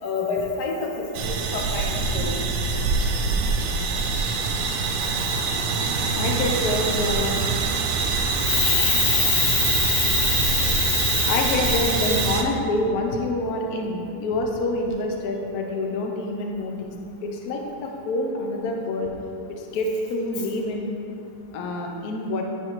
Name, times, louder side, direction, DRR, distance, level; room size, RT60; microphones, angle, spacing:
voice 1, 0.0-2.4 8.5-12.2, left 6 dB, 65° left, 0 dB, 1.2 m, -25 dB
sound 1, 1.1-12.4, right 4 dB, 85° right, 1.4 m, -24 dB
voice 2, 6.1-7.4 11.2-16.9 17.2-19.1 19.6-20.9 21.5-22.4, left 2 dB, 80° left, 1 dB, 0.8 m, -27 dB
9.7 x 4.4 x 3.0 m, 2.8 s
omnidirectional pair, 2.3 m